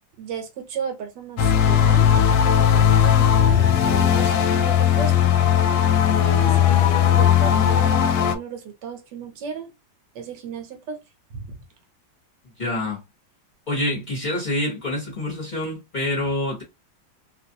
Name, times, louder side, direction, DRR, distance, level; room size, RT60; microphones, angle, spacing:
voice 1, 0.2-2.1 2.5-5.3 6.2-9.7 10.1-11.0 11.3-11.6, right 6 dB, 70° right, 1.4 m, -34 dB
sound 1, 1.4-8.4, left 9 dB, 75° left, 1.2 m, -17 dB
voice 2, 12.6-13.0 13.7-16.6, left 1 dB, 30° left, 1.0 m, -26 dB
3.0 x 2.5 x 2.6 m
omnidirectional pair, 2.0 m